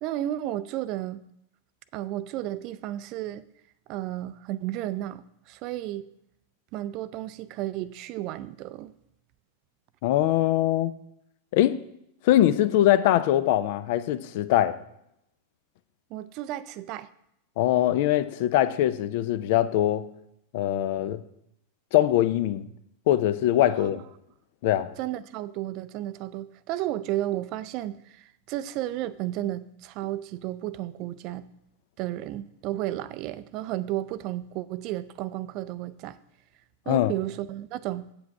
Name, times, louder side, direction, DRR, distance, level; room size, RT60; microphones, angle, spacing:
voice 1, 0.0-1.2 1.9-3.4 3.9-6.1 6.7-8.9 16.1-17.1 23.8-24.0 25.0-31.5 32.0-36.2 36.9-38.1, right 14 dB, 40° right, 0.4 m, -33 dB
voice 2, 10.0-10.9 11.5-11.8 12.2-14.8 17.6-20.1 20.5-21.2 21.9-22.6 23.1-24.0 24.6-24.9 36.9-37.1, left 13 dB, 50° left, 0.5 m, -22 dB
8.5 x 8.0 x 4.8 m
figure-of-eight pair, 90°, 0 cm